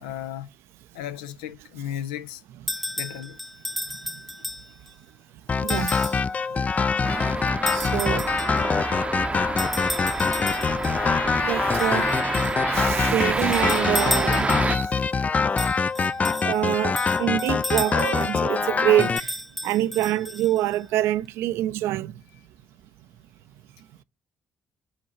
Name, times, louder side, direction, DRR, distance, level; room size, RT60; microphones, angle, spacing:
voice 1, 0.0-0.5 0.9-2.4 3.0-3.4, left 11 dB, 80° left, 0.6 m, -34 dB
sound 1, 2.7-4.9 5.7-6.3 7.7-8.7 9.6-11.0 11.8-12.6 13.4-14.8 15.6-18.4 19.0-20.8, left 1 dB, ahead, 0.9 m, -34 dB
sound 2, 5.5-19.2, left 5 dB, 35° left, 0.4 m, -24 dB
voice 2, 5.6-6.2 7.7-8.3 11.4-12.2 12.7-14.9 15.6-15.7 16.0-16.1 16.4-19.3 19.6-22.1, right 13 dB, 70° right, 0.5 m, -26 dB
sound 3, 7.0-14.8, right 3 dB, 25° right, 0.7 m, -28 dB
8.7 x 4.6 x 5.6 m
hypercardioid pair, 45°, 5 cm